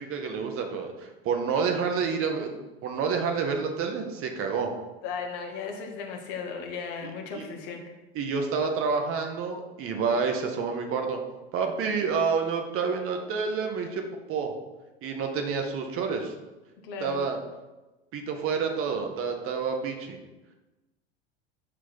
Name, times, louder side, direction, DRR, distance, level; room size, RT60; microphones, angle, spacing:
voice 1, 0.1-4.7 7.0-7.1 7.3-7.4 8.1-11.2 11.5-14.5 15.0-16.3 17.0-17.4 18.1-20.2, right 5 dB, 45° right, 4 dB, 1.8 m, -29 dB
voice 2, 5.0-7.9 16.8-17.3, left 5 dB, 60° left, 2 dB, 2.3 m, -36 dB
12.5 x 5.1 x 6.3 m, 1.1 s
figure-of-eight pair, 75°, 32 cm